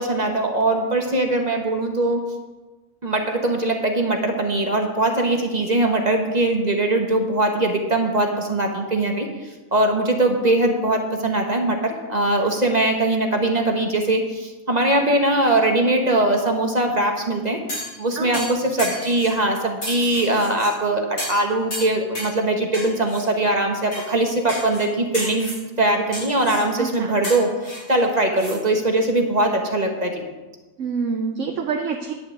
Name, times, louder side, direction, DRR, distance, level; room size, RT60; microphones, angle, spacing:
voice 1, 0.0-2.2 3.0-9.3 9.7-17.6 18.0-25.5 25.8-30.2, right 2 dB, 30° right, 3 dB, 1.2 m, -21 dB
sound 1, 17.7-18.0 18.3-19.3 19.8-20.7 21.2-21.4 21.7-22.4 22.7-23.2 23.9-24.1 24.5-24.8 25.1-25.6 26.1-26.7 27.2-28.6 28.9-29.0, equal, 75° left, 4.8 m, -32 dB
voice 2, 18.1-18.5 26.8-27.1 30.8-32.1, right 5 dB, 65° right, 3 dB, 1.1 m, -26 dB
10.5 x 5.6 x 8.1 m, 1.2 s
omnidirectional pair, 1.4 m